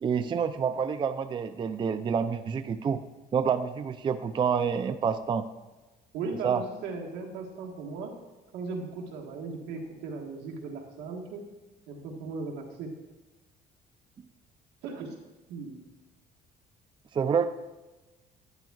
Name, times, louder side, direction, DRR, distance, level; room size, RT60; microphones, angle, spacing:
voice 1, 0.0-3.0 3.3-5.5 6.4-6.6 17.1-17.5, right 6 dB, 30° right, 10 dB, 0.4 m, -28 dB
voice 2, 6.1-8.1 8.5-11.4 11.9-13.0 14.8-15.1 15.5-15.8, right 4 dB, 85° right, 1 dB, 1.5 m, -37 dB
11.0 x 10.5 x 2.4 m, 1.1 s
cardioid pair, 110°, 17 cm